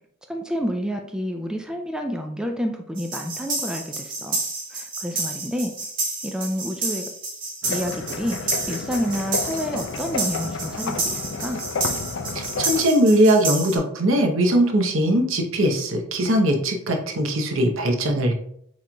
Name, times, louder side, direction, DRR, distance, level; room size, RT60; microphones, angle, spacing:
voice 1, 0.3-4.4 4.7-5.7 6.2-7.1 7.7-11.6, equal, 5° right, 3 dB, 0.3 m, -29 dB
sound 1, 3.0-13.8, right 3 dB, 45° right, 1.2 m, -30 dB
sound 2, 7.6-12.9, left 4 dB, 65° left, 0.4 m, -31 dB
voice 2, 12.3-18.3, right 1 dB, 70° right, 4 dB, 0.8 m, -20 dB
7.7 x 3.1 x 2.2 m, 0.70 s
head